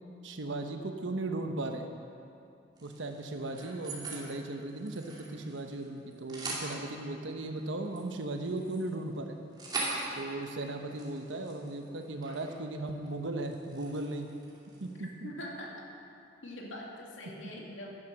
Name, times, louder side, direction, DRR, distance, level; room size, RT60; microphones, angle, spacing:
voice 1, 0.2-1.9 2.8-9.4 10.2-14.3 14.8-15.3, right 2 dB, 90° right, 5 dB, 1.1 m, -37 dB
sound 1, 2.8-4.3 4.6-5.8 6.1-6.7 7.6-12.6 12.9-13.1 13.4-15.0, right 3 dB, 25° right, 2.7 m, -41 dB
voice 2, 15.0-15.7 16.4-18.0, left 1 dB, 90° left, -2 dB, 2.4 m, -43 dB
12.5 x 10.5 x 6.0 m, 2.7 s
head